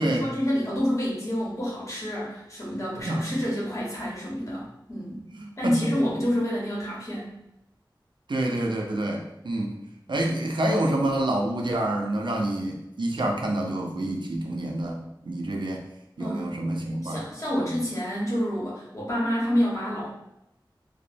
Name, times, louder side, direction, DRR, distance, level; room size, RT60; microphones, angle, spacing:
voice 1, 0.0-5.2 5.6-7.4 16.2-16.5 17.0-20.1, equal, 40° left, -6 dB, 1.0 m, -28 dB
voice 2, 5.4-5.9 8.3-9.7 10.1-15.0 15.2-15.8 16.2-17.2 17.6-17.8, right 1 dB, 70° right, 1 dB, 0.4 m, -27 dB
2.9 x 2.0 x 2.5 m, 0.85 s
wide cardioid pair, 45°, 8 cm